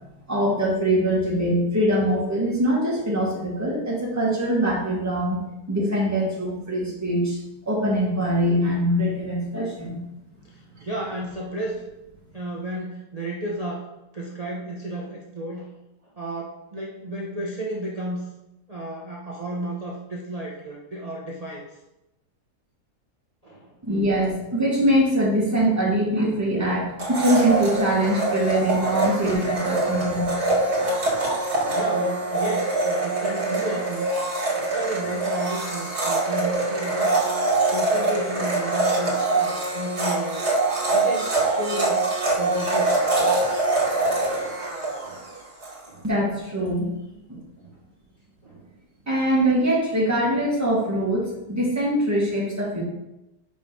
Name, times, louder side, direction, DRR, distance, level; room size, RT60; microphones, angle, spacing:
voice 1, 0.3-5.4 5.7-10.0 23.8-30.3 46.0-46.9 49.1-52.8, right 1 dB, 10° right, -5 dB, 2.0 m, -23 dB
voice 2, 10.5-11.8 12.3-13.9 14.1-15.7 16.2-18.3 18.7-21.7 23.4-23.7 29.0-29.1 29.8-30.1 30.7-31.0 31.4-34.3 34.7-37.1 37.4-40.5 40.8-43.6 44.2-44.4 45.0-45.3 45.8-46.1 47.6-47.8 48.4-48.7, right 1 dB, 30° right, -3 dB, 0.8 m, -33 dB
Domestic sounds home sounds, 27.0-45.8, right 2 dB, 70° right, 2.4 m, -24 dB
5.5 x 5.4 x 5.3 m, 0.92 s
omnidirectional pair, 1.7 m